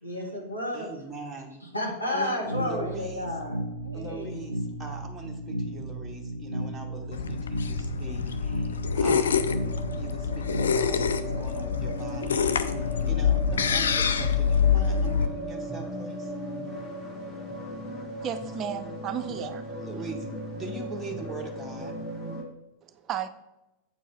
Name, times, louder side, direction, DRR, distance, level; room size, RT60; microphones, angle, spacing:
voice 1, 0.0-0.9 1.6-3.6 3.8-4.4, left 1 dB, 85° left, -3 dB, 1.9 m, -32 dB
voice 2, 0.7-1.6 2.1-2.3 2.6-3.3 3.9-9.6 10.0-12.5 13.0-16.3 19.8-20.2 20.6-21.9, right 2 dB, 5° right, -1 dB, 1.0 m, -41 dB
sound 1, 2.4-11.5, right 1 dB, 85° right, 0.5 m, -35 dB
sound 2, 5.8-5.9 6.7-6.8 7.3-7.4 8.0-22.4, equal, 25° left, 2.0 m, -38 dB
sound 3, 7.1-15.3, left 6 dB, 65° left, 0.4 m, -26 dB
voice 3, 18.2-19.7 20.0-20.1 22.8-23.3, right 8 dB, 30° right, 11 dB, 0.5 m, -34 dB
8.1 x 4.6 x 4.4 m, 0.96 s
figure-of-eight pair, 90°, 0 cm